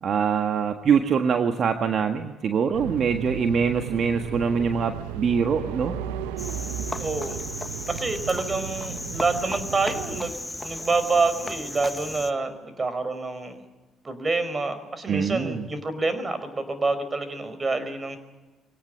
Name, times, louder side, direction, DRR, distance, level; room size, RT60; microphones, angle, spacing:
voice 1, 0.0-5.9 15.1-15.7, right 6 dB, 55° right, 6 dB, 1.6 m, -24 dB
sound 1, 2.7-10.3, right 9 dB, 85° right, 1.0 m, -35 dB
Cricket, 6.4-12.3, left 2 dB, 15° left, 1.9 m, -35 dB
voice 2, 7.0-7.4 7.9-13.6 14.0-18.2, right 3 dB, 30° right, 12 dB, 4.8 m, -27 dB
24.0 x 18.0 x 9.5 m, 1.2 s
hypercardioid pair, 50°, 0 cm